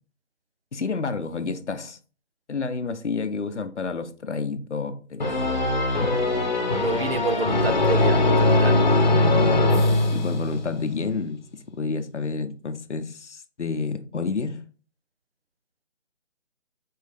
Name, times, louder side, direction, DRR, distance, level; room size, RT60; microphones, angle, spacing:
voice 1, 0.7-2.0 2.5-5.3 10.1-11.4 11.7-14.6, left 4 dB, 70° left, 0.7 m, -29 dB
sound 1, 5.2-10.8, left 2 dB, 40° left, 0.9 m, -21 dB
voice 2, 6.7-8.8, right 3 dB, 55° right, 0.5 m, -28 dB
4.6 x 3.3 x 3.3 m
figure-of-eight pair, 150°, 37 cm